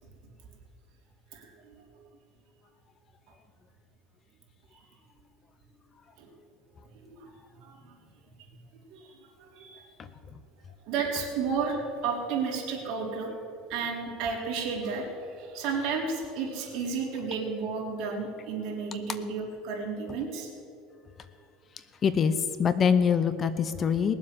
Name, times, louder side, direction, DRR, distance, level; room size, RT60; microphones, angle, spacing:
voice 1, 1.3-2.1 4.7-4.8 6.2-6.3 6.9-7.3 7.5-8.0 8.4-8.5 8.9-9.9 10.8-13.3 13.7-20.5, right 5 dB, 55° right, -1 dB, 3.7 m, -33 dB
voice 2, 22.0-24.1, left 7 dB, 30° left, 12 dB, 0.7 m, -24 dB
20.0 x 7.7 x 7.6 m, 2.5 s
supercardioid pair, 135°, 0 cm